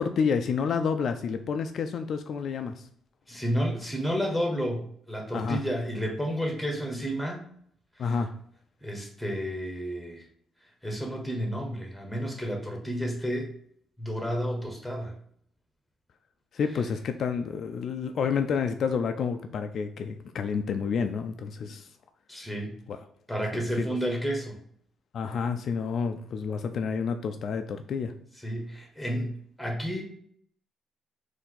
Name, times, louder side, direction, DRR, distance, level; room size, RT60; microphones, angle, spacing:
voice 1, 0.0-2.9 5.3-5.6 8.0-8.3 16.5-21.9 22.9-23.0 23.5-24.0 25.1-28.1, left 6 dB, 60° left, 7 dB, 0.3 m, -29 dB
voice 2, 3.3-7.5 8.0-8.1 8.8-10.3 10.8-13.5 14.0-15.1 22.3-22.7 23.3-24.6 28.4-30.0, equal, ahead, 2 dB, 1.2 m, -31 dB
4.3 x 2.6 x 3.8 m, 0.65 s
cardioid pair, 90°, 0 cm